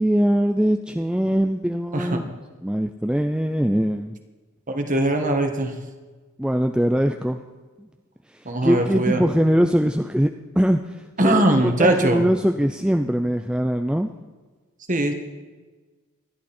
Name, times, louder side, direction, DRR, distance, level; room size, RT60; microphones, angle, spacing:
voice 1, 0.0-2.3 2.6-4.1 6.4-7.4 8.6-10.3 10.6-11.4 11.8-14.1, equal, 5° right, 5 dB, 0.4 m, -21 dB
voice 2, 4.7-5.7 8.4-9.2 11.2-12.2 14.9-15.1, right 1 dB, 35° right, 4 dB, 1.7 m, -21 dB
26.5 x 11.5 x 4.3 m, 1.3 s
head